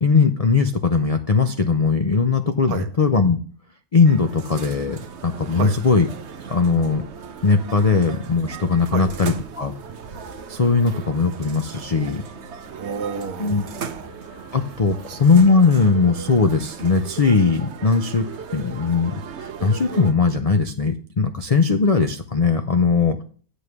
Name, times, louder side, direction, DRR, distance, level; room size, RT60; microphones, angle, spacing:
voice 1, 0.0-3.4 3.9-6.1 6.5-7.0 7.4-9.7 10.5-12.2 13.4-13.6 14.5-23.2, left 4 dB, 55° left, 7 dB, 0.4 m, -19 dB
sound 1, 4.0-20.1, right 6 dB, 55° right, 1.0 m, -37 dB
voice 2, 12.7-14.1 15.1-15.2, right 5 dB, 75° right, 8 dB, 1.5 m, -30 dB
8.1 x 5.3 x 6.0 m, 0.43 s
omnidirectional pair, 1.6 m